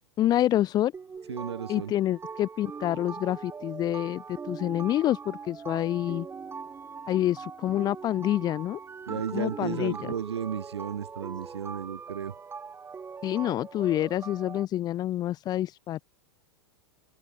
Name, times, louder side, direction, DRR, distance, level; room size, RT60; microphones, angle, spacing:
voice 1, 0.2-0.9 1.7-6.3 7.1-8.8 9.1-9.9 13.2-16.0, left 13 dB, 30° left, 0.5 m, -27 dB
sound 1, 0.9-14.7, right 5 dB, 15° right, 5.4 m, -41 dB
voice 2, 1.3-1.9 9.1-12.3, right 8 dB, 75° right, 4.0 m, -34 dB
hypercardioid pair, 95°, 14 cm